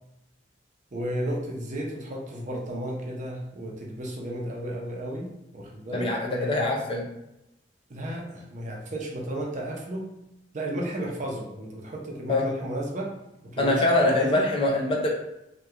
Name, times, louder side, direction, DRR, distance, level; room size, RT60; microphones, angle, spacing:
voice 1, 0.9-6.6 7.9-10.1 10.5-13.1 13.5-14.4, right 1 dB, 40° right, -1 dB, 0.5 m, -33 dB
voice 2, 5.9-7.1 12.3-12.4 13.6-15.1, left 2 dB, 30° left, -1 dB, 0.4 m, -23 dB
2.8 x 2.2 x 2.3 m, 0.87 s
head